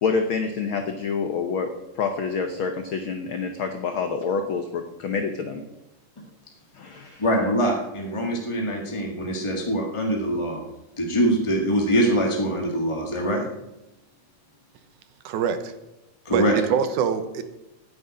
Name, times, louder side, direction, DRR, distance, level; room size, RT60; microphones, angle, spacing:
voice 1, 0.0-5.6 6.7-7.2, left 5 dB, 80° left, 6 dB, 1.1 m, -27 dB
voice 2, 7.2-10.7 11.0-13.4 16.2-16.6, equal, 20° left, 0 dB, 0.7 m, -23 dB
voice 3, 15.2-15.7 16.3-17.4, right 7 dB, 75° right, 10 dB, 2.4 m, -24 dB
9.5 x 8.5 x 9.7 m, 0.96 s
omnidirectional pair, 3.7 m